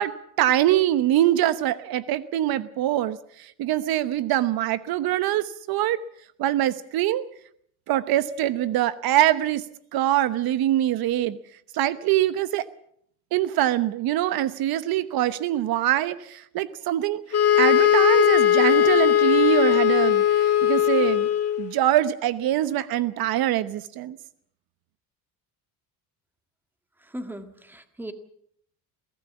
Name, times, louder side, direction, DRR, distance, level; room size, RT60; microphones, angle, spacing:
voice 1, 0.0-6.0 6.4-7.2 7.9-9.6 9.9-11.4 11.7-12.6 13.3-17.2 17.6-21.3 21.6-24.2, right 13 dB, 65° right, 14 dB, 1.0 m, -24 dB
sound 1, 17.3-21.7, left 10 dB, 40° left, 2.3 m, -19 dB
voice 2, 27.1-28.1, right 1 dB, 5° right, 8 dB, 1.7 m, -37 dB
22.0 x 17.0 x 7.2 m, 0.67 s
cardioid pair, 140°, 39 cm